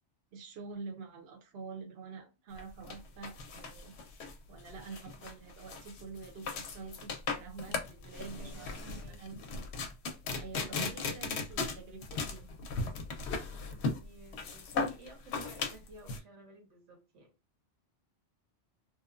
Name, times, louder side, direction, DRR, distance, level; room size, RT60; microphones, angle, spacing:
voice 1, 0.3-3.9 4.5-9.4 10.3-12.5, right 4 dB, 60° right, 0.9 m, -47 dB
sound 1, 2.5-16.2, left 4 dB, 70° left, 0.8 m, -37 dB
voice 2, 8.4-9.5 13.4-17.3, right 1 dB, 85° right, 1.4 m, -55 dB
3.0 x 2.0 x 2.3 m
omnidirectional pair, 1.2 m